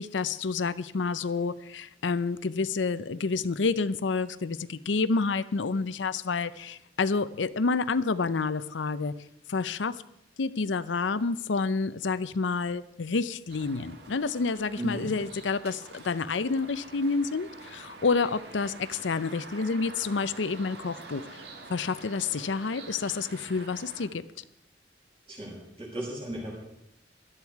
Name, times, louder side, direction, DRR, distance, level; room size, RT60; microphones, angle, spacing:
voice 1, 0.0-9.2 9.5-10.0 10.4-21.2 21.7-24.2, left 4 dB, 85° left, 15 dB, 0.6 m, -29 dB
sound 1, 13.5-24.1, right 3 dB, 65° right, 1.9 m, -47 dB
voice 2, 14.8-15.1 25.3-26.5, equal, 30° right, -4 dB, 6.4 m, -35 dB
17.0 x 12.5 x 4.7 m, 0.80 s
head